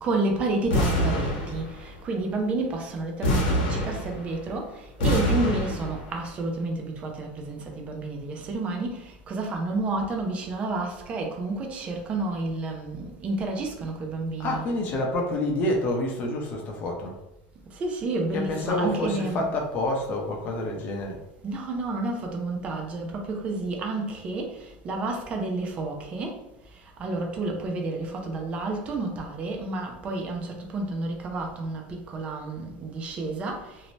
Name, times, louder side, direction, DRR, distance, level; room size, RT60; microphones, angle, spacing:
voice 1, 0.0-4.7 5.0-14.7 17.8-19.5 21.4-26.4 27.0-33.6, right 2 dB, 25° right, 0.5 m, -30 dB
sound 1, 0.7-2.0 3.2-4.5 5.0-6.1, equal, 80° left, 0.9 m, -25 dB
voice 2, 14.4-17.1 18.3-21.2, left 1 dB, 35° left, 0.6 m, -28 dB
2.6 x 2.0 x 3.1 m
supercardioid pair, 155°, 5 cm